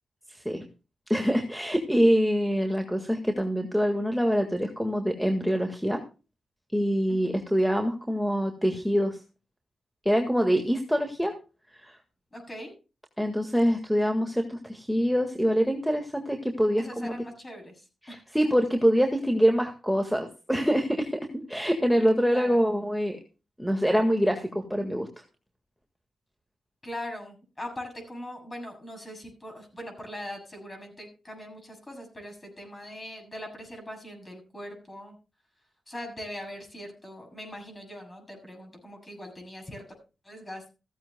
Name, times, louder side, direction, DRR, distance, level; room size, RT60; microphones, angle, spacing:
voice 1, 0.3-0.6 1.1-6.0 6.7-9.2 10.1-11.3 11.8-11.9 13.2-17.2 18.0-23.2 23.6-25.1, equal, ahead, 4 dB, 1.7 m, -25 dB
voice 2, 7.1-7.4 12.3-12.7 16.8-18.5 22.3-22.6 26.8-35.2 35.9-39.9 40.2-40.7, left 1 dB, 25° left, 2 dB, 7.1 m, -41 dB
15.5 x 15.0 x 2.2 m, 0.32 s
cardioid pair, 90°, 0 cm